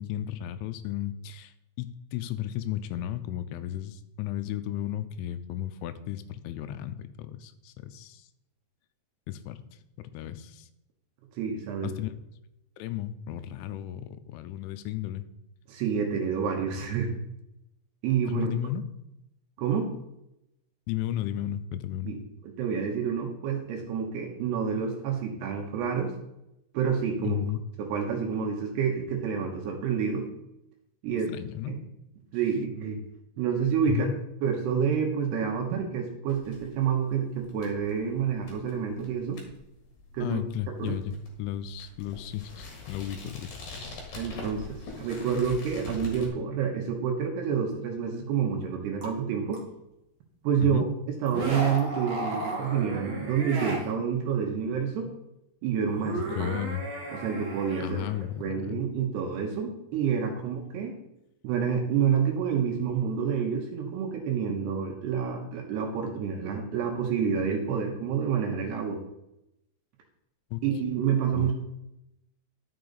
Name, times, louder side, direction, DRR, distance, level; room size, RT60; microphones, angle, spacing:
voice 1, 0.0-8.3 9.3-9.6 10.0-10.7 11.8-12.1 12.8-15.3 18.3-18.8 20.9-22.1 27.2-27.6 31.3-31.7 33.9-34.2 40.2-43.5 50.6-50.9 56.2-56.9 57.8-58.8 70.5-70.6 71.3-71.5, left 12 dB, 85° left, 12 dB, 3.1 m, -34 dB
voice 2, 11.4-11.9 15.7-17.1 18.0-18.5 19.6-19.9 22.0-22.2 22.4-26.1 26.7-27.4 27.8-30.3 31.0-31.3 31.7-31.8 32.3-33.0 33.4-34.1 34.4-39.4 40.1-40.4 40.8-40.9 44.2-49.6 50.4-50.9 51.2-55.1 55.6-56.5 57.1-58.0 58.4-61.0 61.4-69.0 70.6-71.5, right 7 dB, 75° right, 2 dB, 2.8 m, -28 dB
sound 1, 36.3-46.3, left 3 dB, 55° left, 2.6 m, -45 dB
sound 2, 49.0-49.1 49.5-49.6 51.3-53.9 55.8-58.4, right 2 dB, 55° right, 1.7 m, -34 dB
11.0 x 6.8 x 4.0 m, 0.85 s
omnidirectional pair, 5.5 m